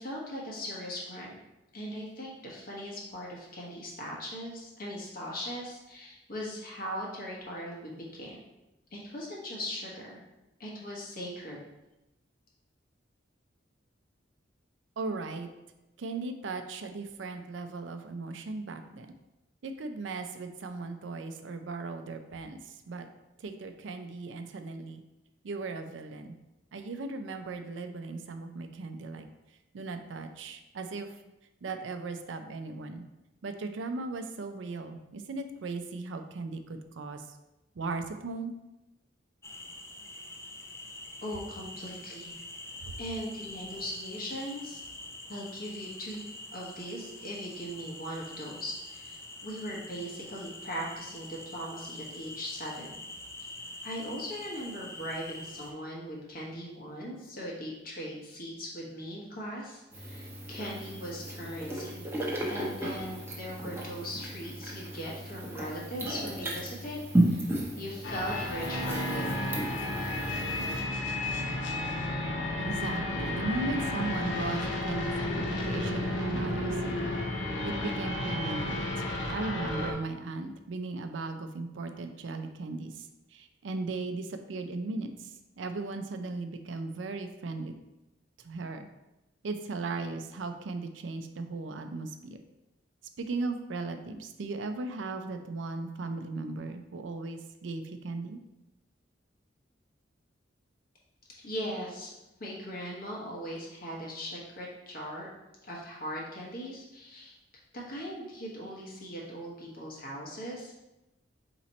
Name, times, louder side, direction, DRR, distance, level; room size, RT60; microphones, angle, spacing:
voice 1, 0.0-1.4 1.7-8.4 8.9-10.2 10.6-11.6 41.2-42.3 43.0-44.8 45.3-46.2 46.5-52.9 53.8-62.0 62.5-67.0 67.2-67.5 67.8-69.4 101.4-102.1 102.4-105.3 105.6-107.3 107.9-110.7, equal, 50° left, -3 dB, 1.2 m, -39 dB
voice 2, 15.0-15.5 16.0-19.2 19.6-23.1 23.4-25.0 25.4-26.4 26.7-29.3 29.7-31.1 31.6-33.0 33.4-37.4 37.8-38.5 42.8-42.9 72.6-77.1 77.6-85.3 85.6-87.7 88.4-88.9 89.4-92.4 93.2-98.4, right 3 dB, 80° right, 7 dB, 0.5 m, -37 dB
sound 1, 39.4-55.7, left 2 dB, 15° left, 0.5 m, -45 dB
sound 2, 59.9-70.8, right 1 dB, 15° right, 0.8 m, -34 dB
sound 3, 68.0-79.9, left 1 dB, 75° left, 0.7 m, -32 dB
4.2 x 3.0 x 4.1 m, 0.96 s
head